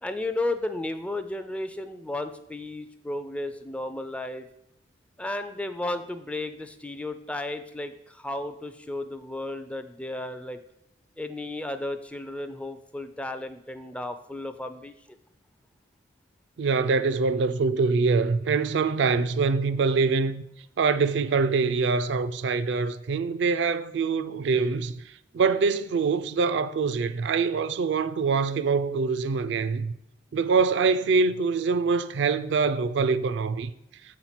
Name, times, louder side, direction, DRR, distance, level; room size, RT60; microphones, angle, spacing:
voice 1, 0.0-4.5 5.2-10.6 11.2-14.9, left 2 dB, 5° left, 0.3 m, -33 dB
voice 2, 16.6-20.4 20.8-29.9 30.3-33.7, right 4 dB, 65° right, 0.4 m, -24 dB
7.1 x 4.4 x 5.7 m
head